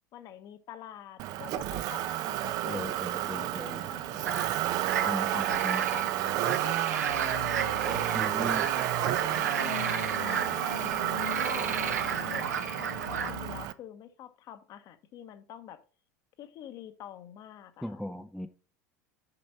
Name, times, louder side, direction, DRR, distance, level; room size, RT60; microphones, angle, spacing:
voice 1, 0.1-4.4 5.0-8.2 8.7-10.4 10.6-12.5 12.7-15.8 16.4-18.0, left 10 dB, 45° left, 1.0 m, -46 dB
Motor vehicle (road), 1.2-13.7, right 14 dB, 45° right, 0.5 m, -31 dB
voice 2, 2.7-3.8 5.0-5.8 8.1-8.7 17.8-18.5, left 1 dB, ahead, 0.5 m, -38 dB
sound 1, 4.3-13.3, right 7 dB, 75° right, 0.9 m, -34 dB
sound 2, 7.0-13.6, left 8 dB, 75° left, 1.3 m, -42 dB
6.8 x 5.2 x 5.8 m
figure-of-eight pair, 80°, 9 cm